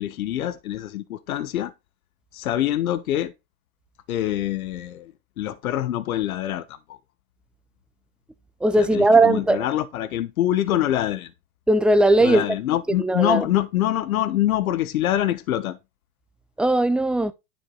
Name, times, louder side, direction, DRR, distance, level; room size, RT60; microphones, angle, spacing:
voice 1, 0.0-1.7 2.3-3.3 4.1-5.1 5.4-7.0 8.8-11.3 12.2-15.8, left 13 dB, 85° left, 1.1 m, -25 dB
voice 2, 8.6-9.7 11.7-12.5 13.0-13.5 16.6-17.3, right 2 dB, ahead, 0.5 m, -18 dB
10.5 x 4.8 x 3.8 m
hypercardioid pair, 115°, 41 cm